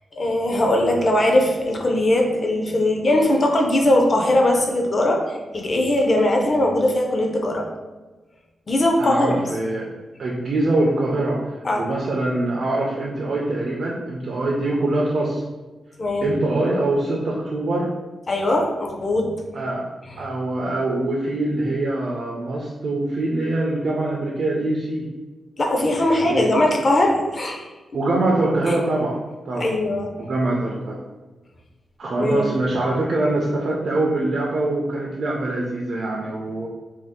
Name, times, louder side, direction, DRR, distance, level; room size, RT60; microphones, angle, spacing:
voice 1, 0.1-7.7 8.7-9.4 11.6-11.9 16.0-16.3 18.3-19.3 25.6-27.6 28.7-28.8 29.6-30.1 32.2-32.7, left 1 dB, 30° left, 1 dB, 0.4 m, -20 dB
voice 2, 9.0-9.9 10.2-15.4 16.2-17.9 19.5-19.9 20.2-25.1 26.2-26.6 27.9-29.2 29.5-29.7 30.2-31.0 32.0-36.7, right 2 dB, 50° right, -3 dB, 0.3 m, -23 dB
2.6 x 2.3 x 3.5 m, 1.2 s
wide cardioid pair, 170°, 0 cm